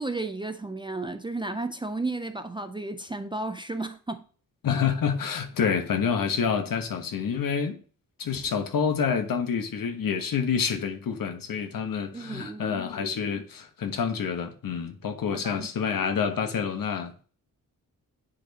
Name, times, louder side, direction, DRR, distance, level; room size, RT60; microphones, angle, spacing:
voice 1, 0.0-4.2 12.1-12.8 15.3-15.7, right 2 dB, 15° right, 0.3 m, -33 dB
voice 2, 4.6-7.8 8.2-17.2, left 6 dB, 75° left, 1.1 m, -28 dB
9.8 x 4.2 x 2.8 m
wide cardioid pair, 170°, 34 cm